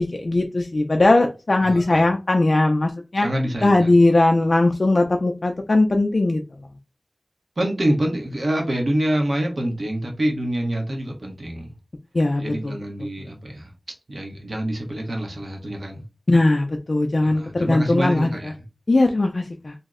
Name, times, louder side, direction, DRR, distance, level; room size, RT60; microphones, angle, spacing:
voice 1, 0.0-3.3 3.6-6.4 12.1-12.8 16.3-18.5 18.9-19.7, left 2 dB, 65° left, 0.3 m, -19 dB
voice 2, 1.6-2.0 3.2-4.0 7.6-11.7 12.4-13.7 14.1-16.0 17.2-18.6, right 1 dB, 75° right, 0.9 m, -26 dB
2.7 x 2.1 x 3.5 m
wide cardioid pair, 60°, 0 cm